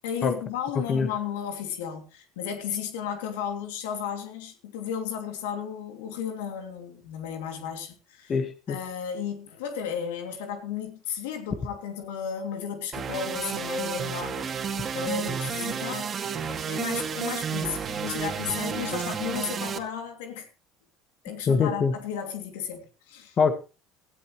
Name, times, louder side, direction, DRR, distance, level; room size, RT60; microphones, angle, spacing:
voice 1, 0.0-8.3 8.7-14.5 14.9-16.1 16.4-20.5 21.2-23.4, left 8 dB, 85° left, 6 dB, 2.9 m, -34 dB
voice 2, 8.3-8.8 21.5-21.9 23.4-23.5, left 5 dB, 40° left, 9 dB, 1.8 m, -23 dB
sound 1, 12.9-19.8, right 6 dB, 35° right, 2.3 m, -31 dB
17.5 x 12.5 x 3.2 m, 0.31 s
supercardioid pair, 85°, 0 cm